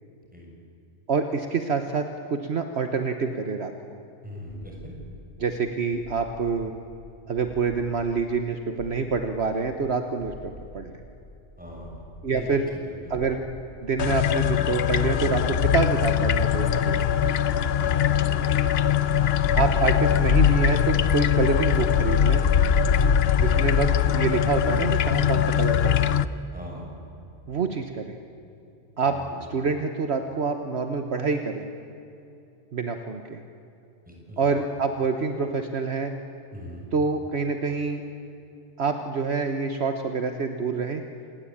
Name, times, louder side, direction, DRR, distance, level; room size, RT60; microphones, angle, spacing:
voice 1, 1.1-3.7 5.4-6.7 7.3-10.9 12.2-12.7 13.1-13.4 13.8-17.1 19.5-22.4 23.4-26.1 27.5-28.2 29.0-29.2 29.5-31.7 32.7-33.4 34.4-36.1 36.9-38.0 38.8-41.0, right 4 dB, 60° right, 6 dB, 1.4 m, -27 dB
voice 2, 4.2-4.9 11.6-12.0 12.3-13.1 17.6-18.6 26.5-26.9 29.0-29.4 34.0-34.5 36.5-36.9, equal, 5° right, -1 dB, 6.6 m, -41 dB
sound 1, 4.5-15.8, equal, 80° left, 5.5 m, -47 dB
sound 2, 14.0-26.2, left 8 dB, 60° left, 0.9 m, -21 dB
27.5 x 19.5 x 8.7 m, 2.7 s
omnidirectional pair, 1.3 m